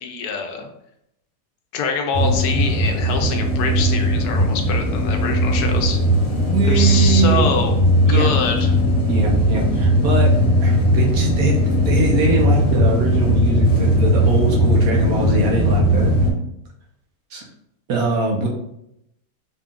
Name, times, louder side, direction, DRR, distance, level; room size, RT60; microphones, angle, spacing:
voice 1, 0.0-0.7 1.7-6.0 6.7-7.8 8.1-8.8, left 5 dB, 75° left, 4 dB, 1.1 m, -25 dB
sound 1, 2.1-16.3, equal, 50° left, 1.2 m, -18 dB
voice 2, 6.5-7.5 8.1-8.3 9.1-10.3 10.6-11.6 11.9-16.1 17.3-17.4 17.9-18.5, right 2 dB, 65° right, -2 dB, 1.3 m, -22 dB
4.0 x 2.3 x 3.6 m, 0.78 s
omnidirectional pair, 1.8 m